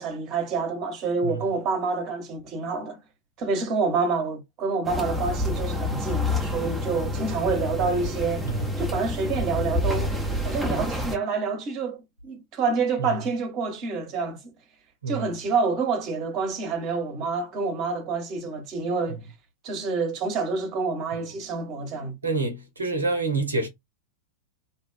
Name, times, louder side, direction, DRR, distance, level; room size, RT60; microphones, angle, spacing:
voice 1, 0.0-3.0 3.4-8.5 8.8-10.2 10.4-14.5 15.1-19.2 19.6-22.2, right 4 dB, 35° right, 0.9 m, -27 dB
sound 1, 4.8-11.2, left 1 dB, ahead, 0.7 m, -28 dB
voice 2, 22.2-23.7, right 3 dB, 75° right, 0.6 m, -27 dB
2.8 x 2.2 x 2.2 m
figure-of-eight pair, 90°, 0 cm